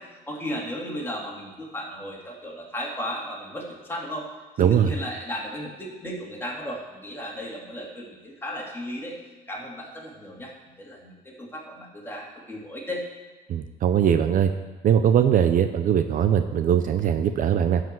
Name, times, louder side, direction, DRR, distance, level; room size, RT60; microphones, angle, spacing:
voice 1, 0.0-4.3 4.6-9.1 9.5-13.0, equal, 15° left, -3 dB, 2.8 m, -35 dB
voice 2, 4.6-4.9 13.5-14.5 14.8-17.8, right 9 dB, 55° right, 9 dB, 0.6 m, -21 dB
12.5 x 5.0 x 7.6 m, 1.2 s
cardioid pair, 110°, 17 cm